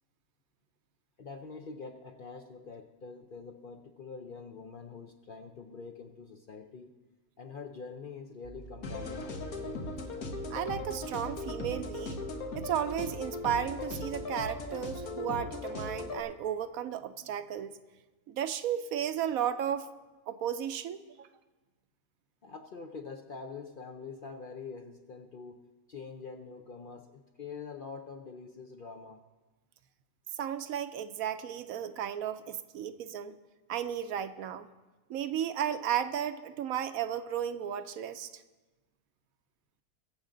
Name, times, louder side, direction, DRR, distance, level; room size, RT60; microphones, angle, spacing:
voice 1, 1.2-6.9 7.4-9.2 22.4-29.2, left 4 dB, 55° left, 5 dB, 0.6 m, -45 dB
sound 1, 8.4-15.0, right 4 dB, 40° right, 0.9 m, -49 dB
sound 2, 8.8-16.2, left 2 dB, 80° left, 1.6 m, -38 dB
voice 2, 10.5-12.2 12.5-17.8 18.3-19.9 20.3-21.3 30.3-33.4 33.7-34.7 35.1-38.3, right 9 dB, 80° right, 11 dB, 1.1 m, -34 dB
22.0 x 7.3 x 3.8 m, 1.2 s
omnidirectional pair, 1.5 m